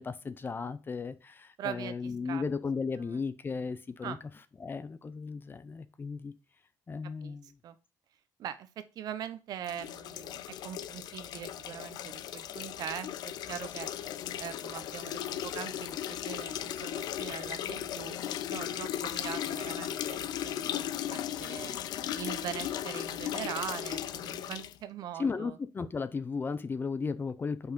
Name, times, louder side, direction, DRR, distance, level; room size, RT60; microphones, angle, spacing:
voice 1, 0.0-4.2 4.6-6.3 6.9-7.5 25.2-27.7, left 5 dB, 30° left, 13 dB, 0.6 m, -35 dB
voice 2, 1.6-2.0 2.2-2.4 4.0-4.2 7.2-7.4 7.6-7.8 8.4-13.9 14.4-21.8 22.1-25.5, right 10 dB, 70° right, 12 dB, 0.8 m, -42 dB
sound 1, 9.6-24.8, left 11 dB, 75° left, 0.5 m, -37 dB
5.4 x 4.5 x 5.3 m, 0.32 s
cardioid pair, 95°, 7 cm